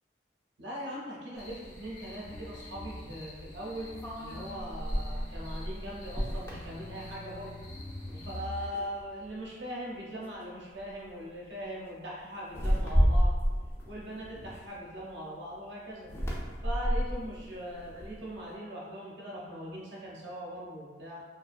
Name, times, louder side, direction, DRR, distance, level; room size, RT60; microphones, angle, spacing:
voice 1, 0.6-3.9 4.2-7.7 8.0-13.4 13.9-16.1 16.6-21.2, equal, 75° right, -4 dB, 0.6 m, -40 dB
sound 1, 1.3-8.7, left 1 dB, 85° left, 0.9 m, -45 dB
sound 2, 4.0-7.6 8.0-8.3 8.7-9.4 10.2-10.4 10.8-11.1 12.4-15.1 16.0-18.4, equal, 15° left, 0.4 m, -31 dB
2.4 x 2.2 x 2.4 m, 1.4 s
head